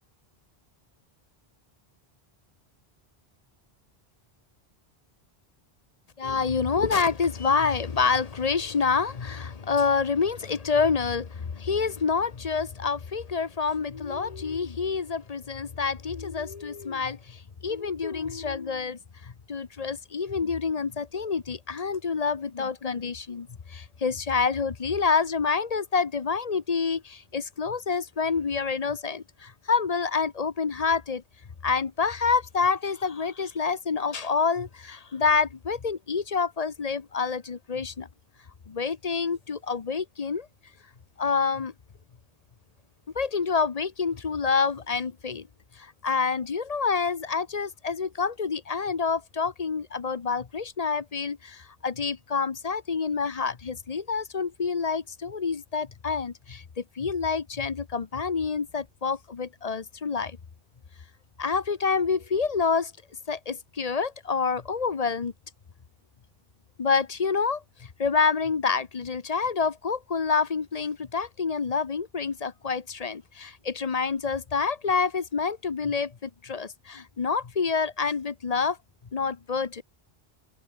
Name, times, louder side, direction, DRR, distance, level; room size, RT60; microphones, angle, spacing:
voice 1, 6.2-31.2 31.6-38.1 38.7-40.5 41.2-41.7 43.1-45.5 45.8-60.4 61.4-62.9 63.3-65.3 66.8-78.8 79.1-79.8, left 5 dB, 40° left, 0.9 m, -27 dB
open air
omnidirectional pair, 1.1 m